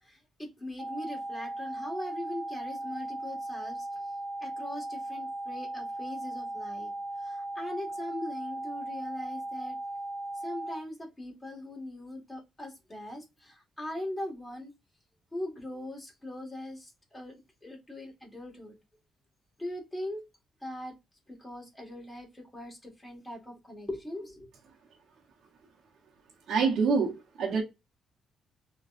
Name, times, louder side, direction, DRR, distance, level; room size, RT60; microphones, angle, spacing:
voice 1, 0.0-4.0 4.4-6.9 7.2-9.8 10.4-14.7 15.3-17.3 17.6-18.8 19.6-20.2 20.6-21.0 21.3-24.5, left 1 dB, 10° left, 1.7 m, -40 dB
sound 1, 0.8-10.8, right 1 dB, 40° right, 0.7 m, -37 dB
voice 2, 26.5-27.6, right 5 dB, 75° right, 0.9 m, -26 dB
3.8 x 3.0 x 2.5 m
cardioid pair, 110°, 0 cm